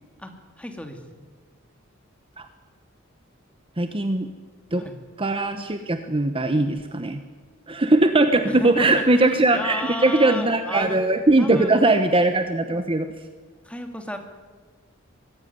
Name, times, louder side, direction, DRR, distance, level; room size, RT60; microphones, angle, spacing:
voice 1, 0.6-1.0 4.8-4.9 8.4-11.0 11.4-12.0 13.6-14.2, left 1 dB, 5° left, 5 dB, 2.5 m, -34 dB
voice 2, 3.8-4.3 4.7-4.8 5.2-7.2 7.7-13.1, right 2 dB, 25° right, 8 dB, 1.1 m, -20 dB
23.0 x 16.0 x 9.5 m, 1.4 s
head